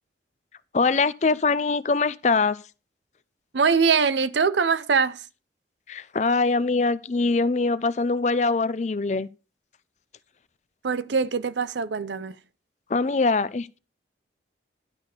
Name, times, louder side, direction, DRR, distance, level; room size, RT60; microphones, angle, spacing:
voice 1, 0.7-2.6 5.9-9.3 12.9-13.8, left 4 dB, 40° left, 0.4 m, -23 dB
voice 2, 3.5-5.2 10.8-12.4, right 5 dB, 80° right, 0.6 m, -23 dB
11.5 x 4.1 x 6.6 m
head